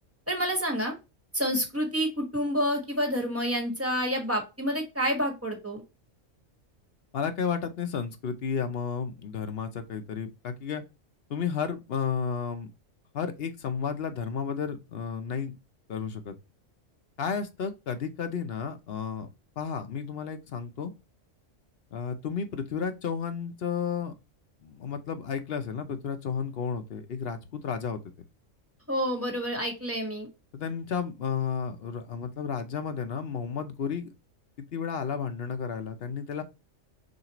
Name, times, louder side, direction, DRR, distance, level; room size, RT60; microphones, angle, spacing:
voice 1, 0.3-0.9 1.3-5.8 28.9-30.3, equal, 10° right, 1.4 m, -28 dB
voice 2, 7.1-10.8 11.3-12.7 13.1-15.5 15.9-16.3 17.2-19.3 19.6-20.9 21.9-24.1 24.6-28.0 30.5-34.1 34.7-36.4, left 6 dB, 55° left, 0.9 m, -32 dB
6.5 x 2.4 x 2.9 m
omnidirectional pair, 1.3 m